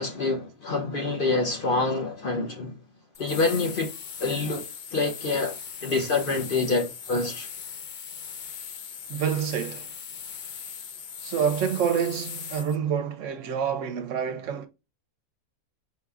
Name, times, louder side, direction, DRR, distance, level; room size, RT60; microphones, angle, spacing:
voice 1, 0.0-2.8 3.2-3.9 4.2-7.5, left 3 dB, 50° left, 0.7 m, -27 dB
sound 1, 3.1-12.8, left 7 dB, 85° left, 0.4 m, -39 dB
voice 2, 9.1-9.9 11.2-14.7, right 7 dB, 70° right, 0.9 m, -27 dB
4.8 x 4.7 x 2.3 m
omnidirectional pair, 1.5 m